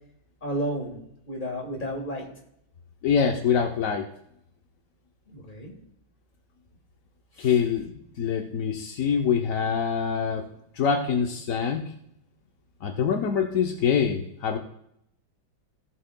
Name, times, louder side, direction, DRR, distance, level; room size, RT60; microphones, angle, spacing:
voice 1, 0.4-1.0 1.3-2.3 5.3-5.8 7.4-7.5, equal, 25° left, 1 dB, 1.8 m, -32 dB
voice 2, 3.0-4.1 7.4-10.5 10.7-11.9 12.8-14.6, left 7 dB, 70° left, 3 dB, 0.8 m, -25 dB
16.0 x 7.5 x 2.2 m, 0.74 s
omnidirectional pair, 2.2 m